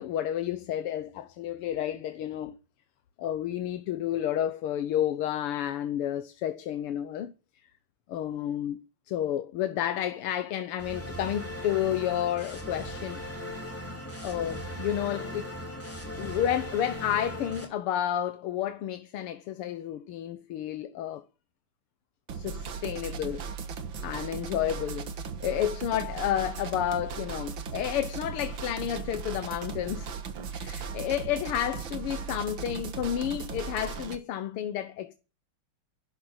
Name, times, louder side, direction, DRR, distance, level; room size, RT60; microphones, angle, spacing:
voice 1, 0.0-2.6 3.2-7.3 7.6-7.7 8.1-13.2 14.2-15.5 16.2-21.3 22.3-23.5 24.0-25.1 25.4-30.1 30.5-35.1, left 11 dB, 85° left, 1.9 m, -31 dB
sound 1, 10.8-17.6, equal, 5° left, 4.2 m, -38 dB
sound 2, 22.3-34.2, right 6 dB, 65° right, 2.1 m, -37 dB
12.0 x 10.5 x 8.8 m
omnidirectional pair, 2.4 m